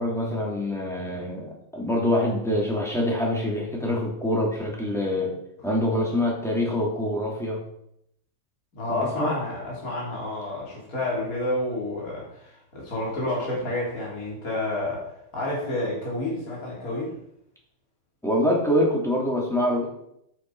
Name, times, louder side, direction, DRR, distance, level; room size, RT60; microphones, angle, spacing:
voice 1, 0.0-5.3 5.6-7.6 8.9-9.3 18.2-19.9, left 1 dB, ahead, -2 dB, 2.6 m, -25 dB
voice 2, 8.7-17.1, left 1 dB, 40° left, -4 dB, 3.8 m, -30 dB
8.9 x 8.8 x 4.8 m, 0.75 s
omnidirectional pair, 2.3 m